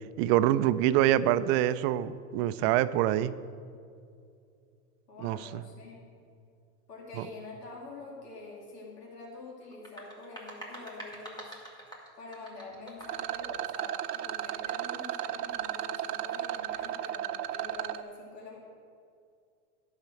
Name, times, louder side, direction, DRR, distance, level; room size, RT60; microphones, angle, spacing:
voice 1, 0.2-3.3 5.2-5.6 7.2-7.3, right 13 dB, 45° right, 15 dB, 0.4 m, -25 dB
voice 2, 5.1-6.1 6.9-11.6 12.2-18.6, left 3 dB, 85° left, -2 dB, 2.5 m, -46 dB
sound 1, 9.7-13.3, right 1 dB, 10° left, 2.1 m, -46 dB
Rattle, 13.0-18.0, right 12 dB, 80° right, 0.7 m, -35 dB
10.5 x 5.8 x 7.6 m, 2.4 s
hypercardioid pair, 115°, 46 cm